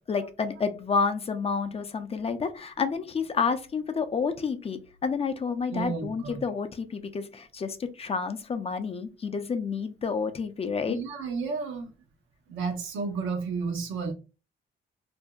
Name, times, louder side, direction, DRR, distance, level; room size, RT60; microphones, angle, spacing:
voice 1, 0.1-11.0, left 5 dB, 30° left, 0.4 m, -29 dB
voice 2, 5.7-6.4 10.9-11.9 12.5-14.1, right 4 dB, 80° right, 0.7 m, -32 dB
2.8 x 2.5 x 2.3 m
cardioid pair, 90°, 20 cm